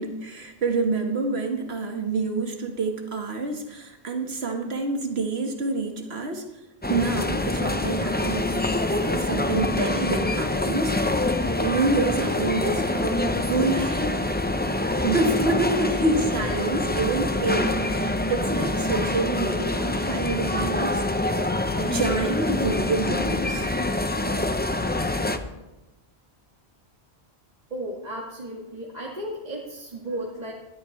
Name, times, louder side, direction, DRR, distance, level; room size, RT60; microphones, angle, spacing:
voice 1, 0.0-6.5 6.9-8.5 9.0-11.3 11.6-14.2 15.0-21.0 21.8-23.7, right 3 dB, 75° right, 4 dB, 1.8 m, -27 dB
sound 1, 6.8-25.4, left 2 dB, 10° left, 0.6 m, -25 dB
voice 2, 27.7-30.5, right 1 dB, 40° right, -4 dB, 2.0 m, -34 dB
18.5 x 13.0 x 3.2 m, 1.0 s
omnidirectional pair, 1.1 m